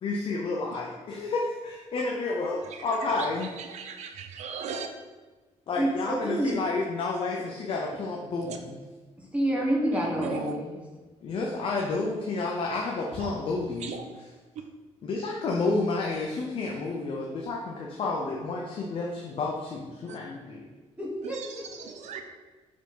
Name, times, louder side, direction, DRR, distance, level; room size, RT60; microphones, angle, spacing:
voice 1, 0.0-3.5 5.7-8.8 11.2-14.3 15.0-20.7, left 3 dB, 45° left, -1 dB, 0.6 m, -30 dB
voice 2, 3.7-4.9 8.4-8.6 10.1-10.5 13.2-13.3 13.8-14.0 20.1-20.2 21.2-21.5 21.8-22.2, right 6 dB, 70° right, 6 dB, 0.6 m, -37 dB
voice 3, 5.8-6.6 9.3-10.8 21.0-21.9, right 1 dB, 10° right, -3 dB, 1.2 m, -28 dB
5.0 x 3.5 x 5.5 m, 1.3 s
cardioid pair, 165°, 12 cm